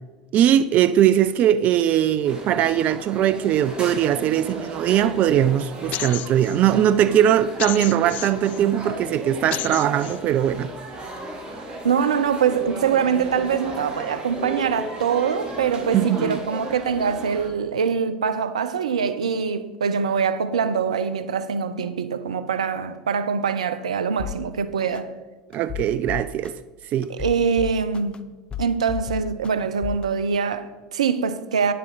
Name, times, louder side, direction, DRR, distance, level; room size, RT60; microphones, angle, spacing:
voice 1, 0.3-10.7 15.9-16.4 25.5-26.6 26.8-27.1, right 10 dB, 45° right, 0.4 m, -20 dB
sound 1, 2.2-17.5, right 1 dB, 30° right, 2.7 m, -35 dB
sound 2, 5.9-6.6 7.6-8.6 9.5-10.2, left 15 dB, 50° left, 0.3 m, -31 dB
voice 2, 11.5-25.1 27.1-28.2 28.6-31.7, right 6 dB, 80° right, 0.6 m, -24 dB
sound 3, 24.2-24.4 24.9-25.0 25.5-26.5 27.0-28.2 28.5-29.5 29.8-30.0, left 10 dB, 30° left, 0.7 m, -32 dB
10.0 x 7.7 x 4.0 m
hypercardioid pair, 75°, 4 cm